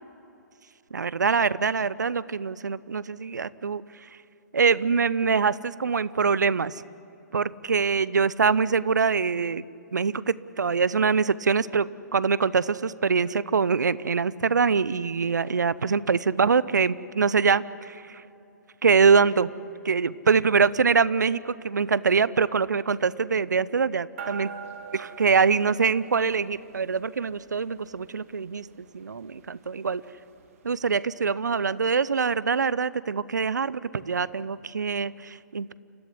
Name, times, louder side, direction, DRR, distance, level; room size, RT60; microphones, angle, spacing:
voice 1, 0.9-3.8 4.5-6.8 7.3-9.6 9.9-18.2 18.8-19.5 19.8-24.5 24.9-30.0 30.6-35.7, right 5 dB, 75° right, 19 dB, 0.7 m, -24 dB
sound 1, 24.2-31.9, right 7 dB, 50° right, 2.4 m, -45 dB
28.5 x 15.0 x 9.8 m, 2.9 s
figure-of-eight pair, 125°, 10 cm